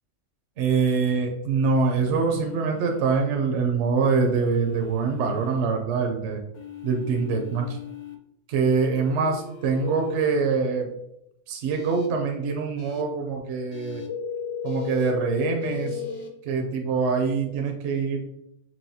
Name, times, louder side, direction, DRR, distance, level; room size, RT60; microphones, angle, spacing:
voice 1, 0.6-6.4 6.8-7.8 8.5-10.9 11.5-14.0 14.6-16.0 16.4-18.2, right 5 dB, 70° right, 3 dB, 0.8 m, -24 dB
sound 1, 1.9-3.2 4.1-5.6 6.5-8.2 8.9-10.3 11.7-12.1 12.8-13.0 13.7-14.1 14.6-15.1 15.6-16.3, left 7 dB, 60° left, 0.5 m, -43 dB
sound 2, 9.8-10.1 14.1-16.1, left 8 dB, 85° left, 1.0 m, -31 dB
4.7 x 2.8 x 2.7 m, 0.81 s
omnidirectional pair, 1.3 m